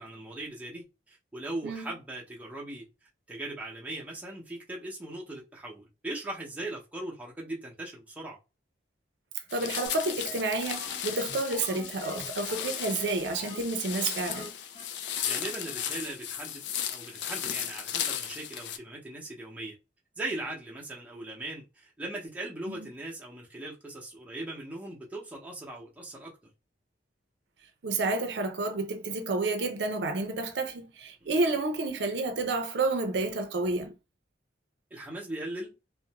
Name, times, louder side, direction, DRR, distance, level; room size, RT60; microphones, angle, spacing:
voice 1, 0.0-2.9 3.3-8.4 15.2-16.6 16.9-19.8 20.2-26.5 34.9-35.7, right 2 dB, 10° right, 0.7 m, -39 dB
sound 1, 9.5-18.8, left 9 dB, 75° left, 0.4 m, -35 dB
voice 2, 9.5-14.5 22.7-22.8 27.8-33.9, right 2 dB, 70° right, 0.5 m, -30 dB
sound 2, 9.9-10.0 10.3-10.4 10.7-12.7 13.0-13.1 13.4-13.6 13.9-14.0 14.3-14.5 14.7-14.8 15.2-15.3 15.7-15.8 16.0-16.1, left 2 dB, 40° left, 1.1 m, -45 dB
2.4 x 2.0 x 2.8 m
head